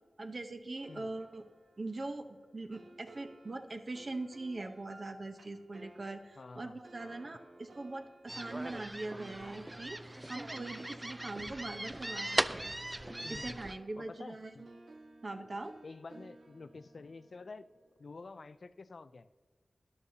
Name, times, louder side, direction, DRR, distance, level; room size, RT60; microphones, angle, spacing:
voice 1, 0.2-1.4 1.8-12.7 13.3-14.6 15.2-15.7, right 2 dB, 45° right, 5 dB, 0.9 m, -42 dB
sound 1, 0.8-12.7 13.0-18.3, right 2 dB, 85° right, 1.1 m, -57 dB
voice 2, 6.4-6.7 13.2-13.6 14.0-14.7 15.8-17.6 18.0-19.3, left 3 dB, 60° left, 13 dB, 0.3 m, -49 dB
sound 2, 8.3-13.7, right 1 dB, 15° right, 0.3 m, -38 dB
13.0 x 11.0 x 2.8 m, 1.5 s
wide cardioid pair, 100°, 0 cm